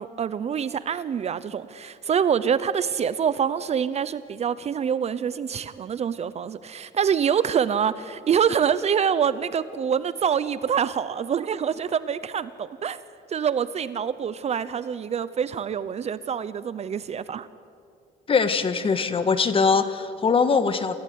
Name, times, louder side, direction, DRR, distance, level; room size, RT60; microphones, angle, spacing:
voice 1, 0.0-13.0 13.3-17.5, right 7 dB, 40° right, 16 dB, 0.7 m, -26 dB
voice 2, 18.3-21.0, left 5 dB, 30° left, 11 dB, 1.6 m, -22 dB
28.0 x 15.5 x 9.5 m, 2.4 s
cardioid pair, 130°, 18 cm